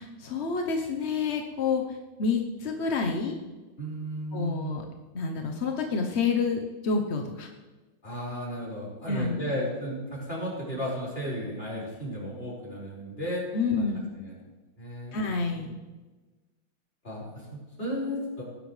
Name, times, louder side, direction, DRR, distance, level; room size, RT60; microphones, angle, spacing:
voice 1, 0.0-3.4 4.3-4.8 5.1-7.5 9.1-9.4 13.5-14.1 15.1-15.8, left 4 dB, 50° left, 3 dB, 0.8 m, -28 dB
voice 2, 3.8-4.8 8.0-13.4 13.8-13.9 14.2-14.3 14.8-15.2 15.6-15.7 17.0-18.4, equal, 25° left, -5 dB, 5.3 m, -34 dB
19.5 x 10.5 x 3.2 m, 1.2 s
omnidirectional pair, 2.3 m